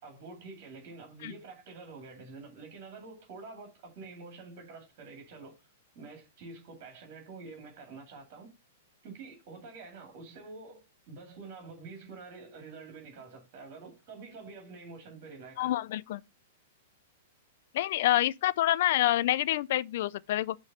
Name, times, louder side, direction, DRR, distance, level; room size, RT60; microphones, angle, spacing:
voice 1, 0.0-5.6 5.9-8.5 9.0-15.7, right 4 dB, 45° right, 2.3 m, -47 dB
voice 2, 15.6-16.2 17.7-20.6, left 14 dB, 55° left, 0.3 m, -27 dB
6.3 x 3.1 x 5.3 m
figure-of-eight pair, 105°, 0 cm